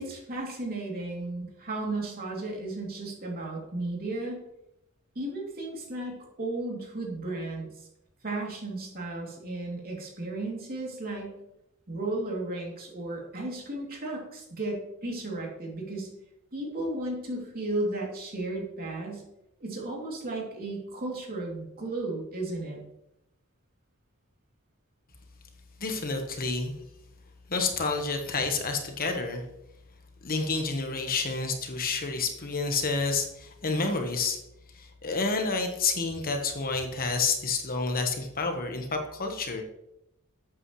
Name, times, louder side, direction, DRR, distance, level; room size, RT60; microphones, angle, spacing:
voice 1, 0.0-4.4 5.1-7.7 8.2-11.4 11.9-16.1 16.5-19.2 19.6-22.8, right 2 dB, 45° right, -1 dB, 2.9 m, -34 dB
voice 2, 25.8-26.8 27.5-29.4 30.2-34.4 34.7-39.6, left 4 dB, 45° left, 4 dB, 1.3 m, -29 dB
12.0 x 8.5 x 3.2 m, 0.84 s
head